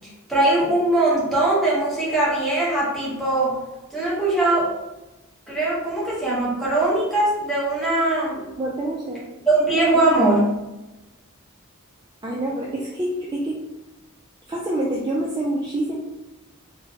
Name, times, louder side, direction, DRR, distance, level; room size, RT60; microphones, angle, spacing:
voice 1, 0.3-3.6 3.9-4.7 5.5-8.4 9.5-10.5, right 2 dB, ahead, -7 dB, 1.0 m, -20 dB
voice 2, 8.6-9.3 9.9-10.0 12.2-13.6 14.5-16.0, right 1 dB, 20° right, -3 dB, 0.3 m, -26 dB
3.9 x 2.2 x 2.8 m, 1.0 s
head